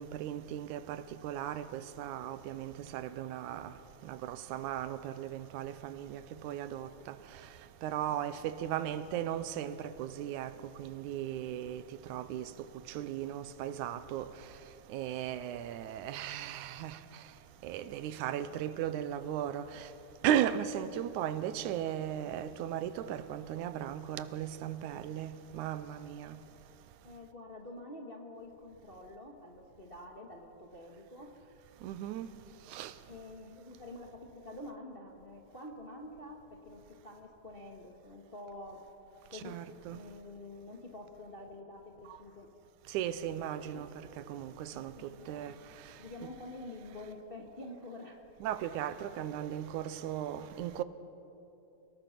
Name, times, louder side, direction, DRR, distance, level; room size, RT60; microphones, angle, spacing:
voice 1, 0.0-3.7 4.0-7.2 7.8-10.5 10.8-11.8 12.1-12.5 12.9-14.3 14.9-17.0 17.6-19.9 20.2-26.4 31.8-32.3 32.7-32.9 39.3-40.0 42.9-43.9 44.3-45.5 48.4-50.8, right 11 dB, 90° right, 2.2 m, -36 dB
voice 2, 18.0-18.9 27.0-31.3 33.1-38.8 39.3-39.6 39.9-42.5 43.7-43.8 44.7-45.6 46.0-48.2, left 2 dB, 30° left, 1.0 m, -48 dB
29.0 x 18.0 x 5.9 m
omnidirectional pair, 3.5 m